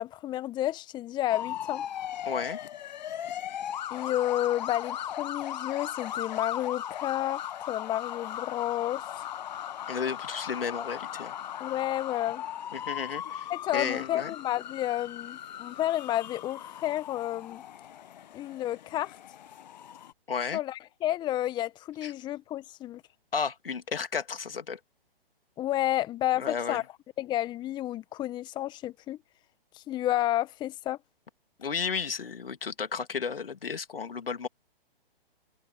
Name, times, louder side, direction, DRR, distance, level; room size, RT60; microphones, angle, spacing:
voice 1, 0.0-1.8 3.9-9.0 11.6-12.4 13.5-17.6 18.3-19.2 20.5-23.0 25.6-26.8 27.2-29.2 29.7-31.0, left 13 dB, 15° left, 1.2 m, -31 dB
sound 1, 1.3-20.1, left 10 dB, 50° left, 1.4 m, -38 dB
voice 2, 2.2-2.6 9.9-11.3 12.7-14.3 20.3-20.6 22.0-22.1 23.3-24.8 26.4-26.8 31.6-34.5, left 6 dB, 70° left, 2.5 m, -33 dB
figure-of-eight pair, 130°, 30 cm